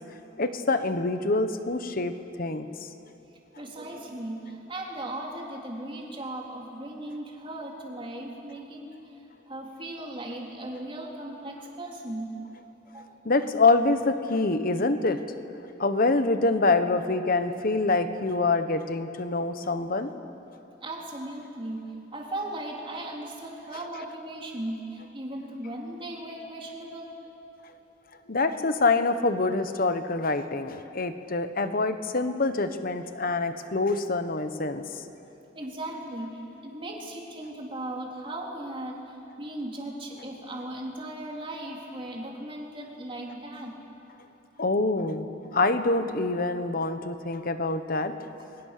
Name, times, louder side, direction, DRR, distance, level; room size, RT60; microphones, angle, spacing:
voice 1, 0.4-2.7 13.2-15.2 15.8-20.1 28.3-34.8 44.6-45.3 45.5-48.1, left 3 dB, 50° left, 9 dB, 1.2 m, -25 dB
voice 2, 3.6-12.4 12.9-13.2 20.8-27.2 32.5-32.6 35.5-43.7, right 1 dB, 30° right, -1 dB, 3.7 m, -37 dB
30.0 x 22.5 x 6.8 m, 2.9 s
head